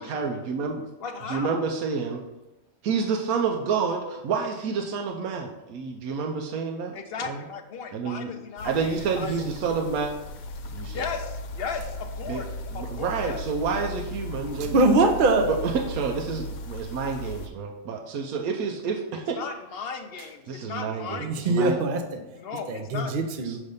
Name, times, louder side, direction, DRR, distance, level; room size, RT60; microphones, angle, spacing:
voice 1, 0.0-0.8 1.3-2.2 2.8-7.0 7.2-7.4 7.9-8.3 8.6-10.1 10.7-11.0 12.3-12.4 12.7-14.8 15.5-19.4 20.5-21.8 23.4-23.6, right 5 dB, 85° right, 2 dB, 1.1 m, -29 dB
voice 2, 1.0-1.7 6.9-9.5 10.8-13.4 19.3-21.6 22.3-23.1, left 5 dB, 60° left, 6 dB, 0.6 m, -36 dB
sound 1, 8.6-17.5, left 1 dB, 75° left, 1.1 m, -37 dB
voice 3, 14.5-15.5 21.2-22.2 22.7-23.6, right 2 dB, 55° right, 5 dB, 0.6 m, -22 dB
6.4 x 3.2 x 5.3 m, 0.97 s
omnidirectional pair, 1.5 m